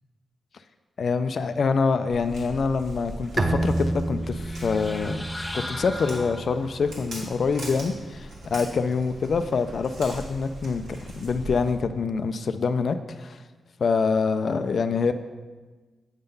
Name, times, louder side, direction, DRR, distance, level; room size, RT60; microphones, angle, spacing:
voice 1, 1.0-5.2 5.5-10.8 11.1-13.4 13.8-15.1, left 5 dB, 55° left, 10 dB, 0.3 m, -25 dB
Walk footsteps, 2.1-11.7, right 1 dB, 85° right, 2.0 m, -41 dB
Bowed string instrument, 3.4-6.8, right 2 dB, 35° right, 0.6 m, -29 dB
sound 1, 4.2-6.9, left 1 dB, 10° left, 0.6 m, -37 dB
7.9 x 3.8 x 5.3 m, 1.3 s
cardioid pair, 105°, 0 cm